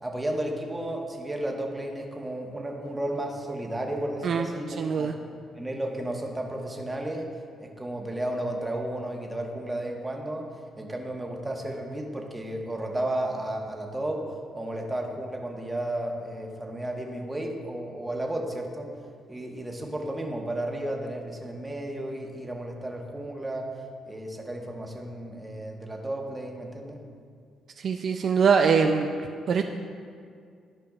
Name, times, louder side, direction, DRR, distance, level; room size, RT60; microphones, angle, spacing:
voice 1, 0.0-5.1 5.6-7.3 7.6-10.5 10.8-18.9 19.3-23.7 24.1-27.0, right 1 dB, 15° right, 1 dB, 1.1 m, -33 dB
voice 2, 4.8-5.1 27.8-29.1 29.5-29.6, right 6 dB, 55° right, 5 dB, 0.3 m, -22 dB
13.0 x 5.2 x 2.4 m, 2.2 s
cardioid pair, 90°, 0 cm